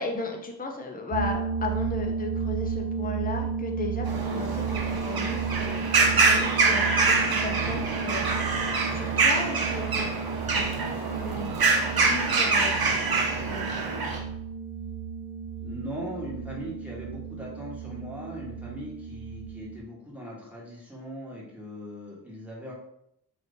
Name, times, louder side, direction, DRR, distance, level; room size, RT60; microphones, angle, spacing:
voice 1, 0.0-8.3 8.9-10.1 10.5-14.0, left 3 dB, 20° left, 2 dB, 0.6 m, -36 dB
sound 1, 1.1-19.8, right 6 dB, 85° right, 0.6 m, -33 dB
sound 2, 4.1-14.2, right 3 dB, 60° right, 0.9 m, -25 dB
voice 2, 15.6-22.7, equal, 5° right, -5 dB, 1.4 m, -39 dB
2.8 x 2.7 x 3.4 m, 0.76 s
cardioid pair, 45°, 41 cm